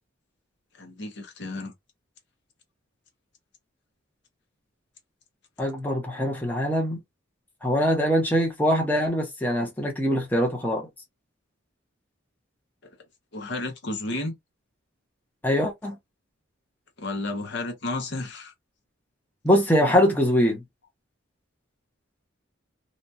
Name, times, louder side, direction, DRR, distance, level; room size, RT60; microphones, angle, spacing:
voice 1, 0.8-1.7 13.3-14.3 17.0-18.5, left 2 dB, 60° left, 0.8 m, -32 dB
voice 2, 5.6-7.0 7.6-10.9 15.4-16.0 19.4-20.6, equal, 10° left, 0.7 m, -23 dB
2.8 x 2.3 x 2.7 m
head